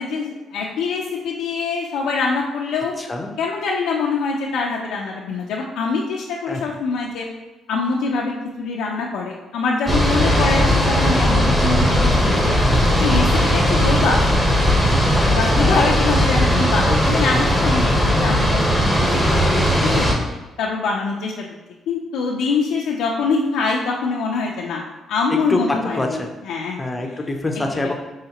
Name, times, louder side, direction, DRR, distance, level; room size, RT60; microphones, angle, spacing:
voice 1, 0.0-2.9 3.4-7.3 7.7-8.3 8.6-12.5 13.0-14.2 15.2-20.1 20.6-21.5 21.9-27.3 27.8-27.9, left 4 dB, 85° left, -3 dB, 0.5 m, -24 dB
voice 2, 3.0-3.3 6.5-6.6 15.2-15.9 16.9-17.0 25.5-25.6 25.9-26.3 26.8-27.9, left 2 dB, 20° left, 3 dB, 0.6 m, -25 dB
sound 1, 9.9-20.1, equal, 5° right, 1.0 m, -17 dB
5.7 x 3.1 x 2.9 m, 1.1 s
cardioid pair, 90°, 0 cm